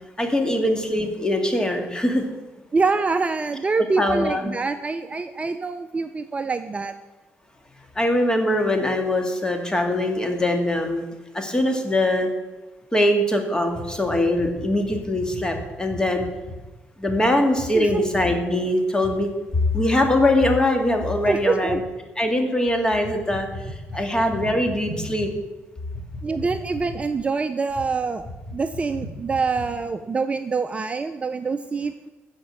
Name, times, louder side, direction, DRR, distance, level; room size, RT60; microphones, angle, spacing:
voice 1, 0.2-2.3 4.0-4.5 8.0-11.0 11.3-12.3 12.9-16.3 17.0-19.3 19.7-21.8 22.2-25.3, left 1 dB, 15° left, 5 dB, 2.1 m, -22 dB
voice 2, 2.7-6.9 17.7-18.0 21.3-21.8 26.2-28.2 28.5-31.9, right 4 dB, 25° right, 8 dB, 0.6 m, -25 dB
sound 1, 13.7-16.6 17.0-17.2 17.5-18.3 19.0-19.2 19.5-19.7 20.0-20.2 21.2-21.8 23.0-25.3 25.9-27.2 27.7-27.9 28.2-29.9, left 1 dB, ahead, 3.3 m, -37 dB
13.0 x 5.2 x 8.8 m, 1.1 s
cardioid pair, 90°, 5 cm